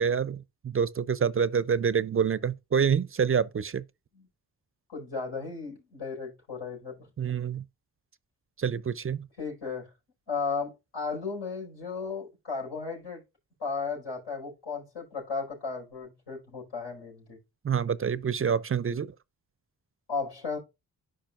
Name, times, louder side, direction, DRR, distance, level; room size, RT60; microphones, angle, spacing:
voice 1, 0.0-3.8 7.2-7.6 8.6-9.3 17.6-19.1, right 7 dB, 35° right, 0.4 m, -27 dB
voice 2, 4.9-7.1 9.4-9.9 10.3-13.2 13.6-17.4 20.1-20.6, left 5 dB, 90° left, 4.7 m, -35 dB
10.5 x 4.9 x 2.4 m
cardioid pair, 50°, 39 cm